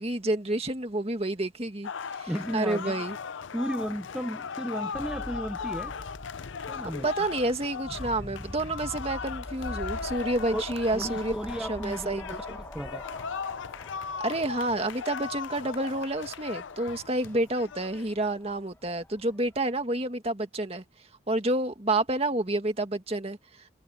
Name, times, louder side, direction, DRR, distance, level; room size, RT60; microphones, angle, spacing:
voice 1, 0.0-3.2 7.0-11.3 11.6-12.6 14.2-20.8 21.3-23.4, right 2 dB, 30° right, 2.0 m, -29 dB
sound 1, 1.8-18.1, left 6 dB, 70° left, 0.6 m, -38 dB
voice 2, 2.3-3.0 3.5-5.9 6.7-7.1 10.5-10.6 10.9-13.0, equal, 5° right, 0.7 m, -34 dB
sound 2, 4.9-19.6, left 1 dB, 10° left, 1.1 m, -44 dB
head